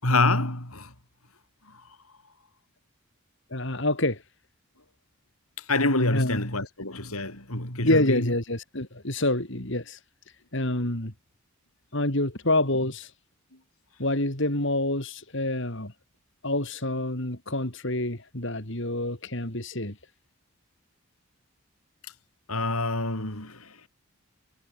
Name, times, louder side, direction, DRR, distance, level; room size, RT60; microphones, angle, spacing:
voice 1, 0.0-0.9 5.6-8.3 22.5-23.7, left 2 dB, 85° left, 7.5 m, -26 dB
voice 2, 3.5-4.2 6.1-6.4 7.8-10.0 10.5-11.1 11.9-13.1 14.0-15.9 16.4-20.0, left 1 dB, 55° left, 4.2 m, -27 dB
head